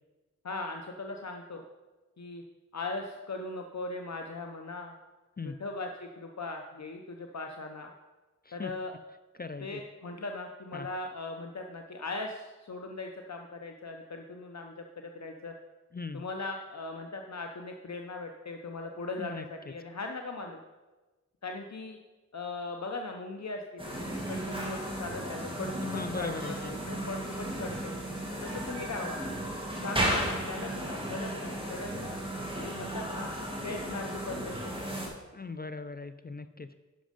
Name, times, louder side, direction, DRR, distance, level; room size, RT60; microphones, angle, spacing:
voice 1, 0.4-1.6 2.2-2.4 2.7-4.9 5.4-7.9 8.5-8.9 9.6-15.5 16.1-20.6 21.4-22.0 22.3-26.6 26.8-27.9 28.4-29.2 29.8-32.2 32.5-33.3 33.6-34.8, left 3 dB, 65° left, 3 dB, 0.8 m, -39 dB
voice 2, 9.4-9.8 10.7-10.9 15.9-16.2 19.2-19.4 25.8-26.7 35.3-36.7, left 4 dB, 30° left, 10 dB, 0.4 m, -38 dB
sound 1, 23.8-35.1, right 1 dB, 15° right, 2.2 m, -35 dB
10.5 x 6.3 x 5.1 m, 1.2 s
wide cardioid pair, 55°, 30 cm